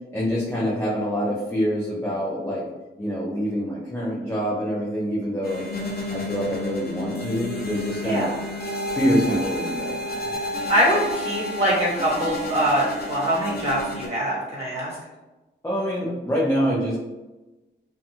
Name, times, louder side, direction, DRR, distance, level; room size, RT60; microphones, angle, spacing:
voice 1, 0.1-2.6 3.0-5.6 6.1-8.3 8.9-10.1 15.6-17.0, equal, 15° left, -8 dB, 0.5 m, -25 dB
sound 1, 5.4-14.1, left 1 dB, 55° left, 0.6 m, -31 dB
voice 2, 10.7-15.0, right 1 dB, 35° right, -7 dB, 1.3 m, -23 dB
2.6 x 2.3 x 2.8 m, 1.1 s
wide cardioid pair, 105°, 19 cm